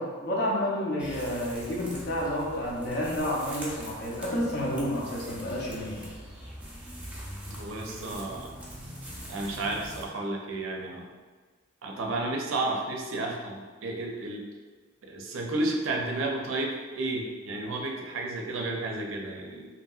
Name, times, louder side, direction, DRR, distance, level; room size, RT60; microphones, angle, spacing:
voice 1, 0.0-6.0, equal, 55° left, -4 dB, 0.7 m, -30 dB
sound 1, 1.0-10.1, equal, 5° right, 0.5 m, -43 dB
voice 2, 7.5-8.6 9.3-11.0 11.8-14.4 15.0-19.7, right 2 dB, 75° right, 0 dB, 0.5 m, -32 dB
2.9 x 2.7 x 2.3 m, 1.5 s
head